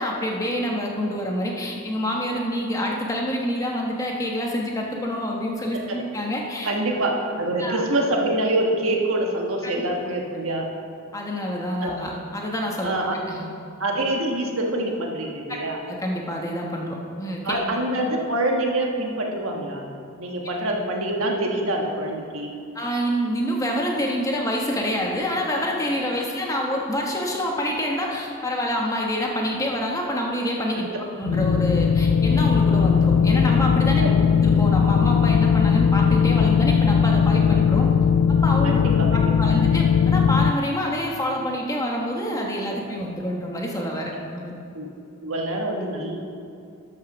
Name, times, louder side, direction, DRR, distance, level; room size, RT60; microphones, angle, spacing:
voice 1, 0.0-6.7 7.6-7.8 9.6-9.7 11.1-12.9 13.3-13.5 15.8-17.6 22.7-30.9 31.2-34.0 34.4-37.9 38.3-38.8 39.1-44.6, equal, 15° left, -1 dB, 1.1 m, -27 dB
voice 2, 6.6-10.6 11.8-12.0 12.8-13.2 13.8-15.8 17.4-19.9 20.2-22.5 30.7-31.0 34.0-34.1 38.6-39.5 42.7-42.8 44.7-44.9 45.2-46.2, right 1 dB, 75° right, 1 dB, 1.4 m, -25 dB
sound 1, 31.2-40.5, left 6 dB, 65° left, 0.3 m, -18 dB
12.5 x 5.6 x 6.0 m, 2.6 s
head